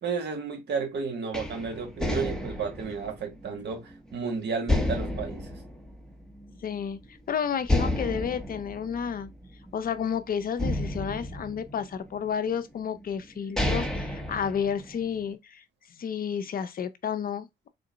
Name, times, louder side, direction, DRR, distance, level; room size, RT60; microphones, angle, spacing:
voice 1, 0.0-5.6, right 5 dB, 60° right, 1.4 m, -32 dB
sound 1, 1.3-4.1 4.7-6.6 7.0-7.1 7.6-10.0 10.6-12.2 12.9-13.0 13.4-15.2, left 1 dB, 5° left, 0.8 m, -31 dB
voice 2, 6.5-9.3 9.7-15.6 15.9-17.7, left 7 dB, 45° left, 0.5 m, -31 dB
3.7 x 2.1 x 3.8 m
cardioid pair, 90°, 20 cm